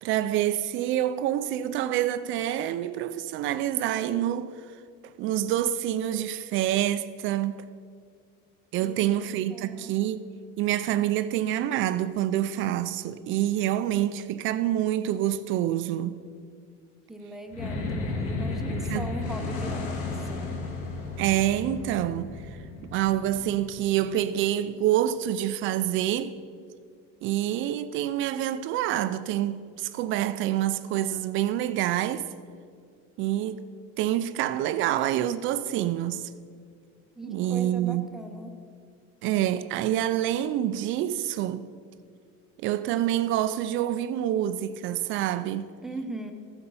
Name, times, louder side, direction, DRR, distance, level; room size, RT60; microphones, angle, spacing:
voice 1, 0.0-4.5 5.2-7.6 8.7-10.2 10.6-16.2 18.7-19.1 21.2-22.3 22.9-26.4 27.2-32.3 33.2-33.6 34.0-36.3 37.2-38.1 39.2-41.7 42.6-45.7, right 12 dB, 45° right, 0.4 m, -27 dB
voice 2, 8.8-10.0 17.1-20.5 37.2-38.6 45.8-46.3, right 1 dB, ahead, 0.7 m, -40 dB
sound 1, 17.5-24.1, left 3 dB, 50° left, 1.9 m, -33 dB
14.0 x 7.9 x 5.4 m
cardioid pair, 165°, 30 cm